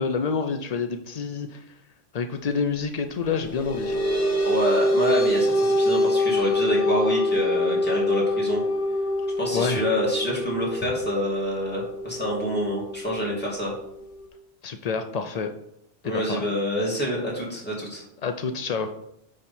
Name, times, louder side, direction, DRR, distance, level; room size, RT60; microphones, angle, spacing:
voice 1, 0.0-1.6 2.1-4.0 9.5-9.8 14.6-15.5 16.0-16.5 18.2-18.9, left 5 dB, 70° left, 6 dB, 0.3 m, -28 dB
sound 1, 3.3-14.3, left 1 dB, 40° left, 1.0 m, -25 dB
voice 2, 4.4-8.6 9.4-13.7 16.0-18.0, equal, 10° left, -5 dB, 2.5 m, -27 dB
9.6 x 3.7 x 4.3 m, 0.78 s
omnidirectional pair, 1.3 m